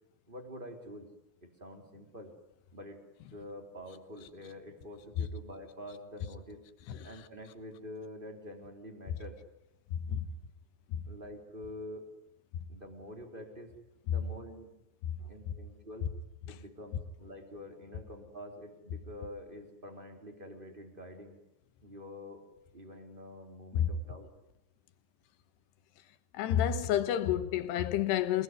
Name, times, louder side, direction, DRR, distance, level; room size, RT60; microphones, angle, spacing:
voice 1, 0.3-1.1 1.4-2.3 2.7-3.0 3.3-6.6 7.0-9.4 11.0-12.1 12.7-13.7 14.1-14.7 15.3-16.1 16.5-21.4 21.8-22.4 22.7-24.3, left 1 dB, 10° right, 3.5 m, -47 dB
voice 2, 9.9-10.3 10.9-11.0 23.7-23.9 26.3-28.4, left 10 dB, 75° left, 3.3 m, -30 dB
28.5 x 20.0 x 9.7 m
omnidirectional pair, 5.0 m